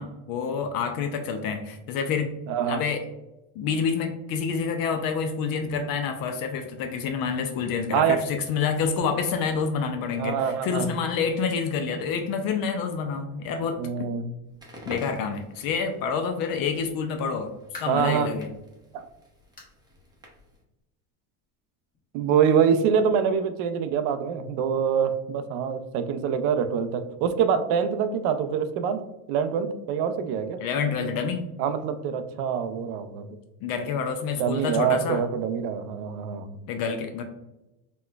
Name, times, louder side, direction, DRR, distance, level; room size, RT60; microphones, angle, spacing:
voice 1, 0.0-2.3 2.7-3.0 3.6-13.8 14.9-17.5 17.8-18.5 30.6-31.5 33.6-35.2 36.7-37.2, left 6 dB, 55° left, 5 dB, 0.5 m, -28 dB
voice 2, 2.5-2.8 7.9-8.2 10.1-10.9 13.8-14.3 17.9-18.3 18.9-19.1 22.1-29.0 29.3-30.6 31.6-33.3 34.4-36.6, right 7 dB, 65° right, 10 dB, 0.5 m, -25 dB
Crackle, 14.5-20.6, equal, 10° right, 0.6 m, -47 dB
sound 1, 17.7-18.2 18.7-18.8 19.6-19.8 20.2-20.3 20.8-20.9 21.9-22.0, left 3 dB, 20° left, 0.9 m, -45 dB
4.2 x 2.2 x 2.2 m, 0.96 s
supercardioid pair, 115°, 43 cm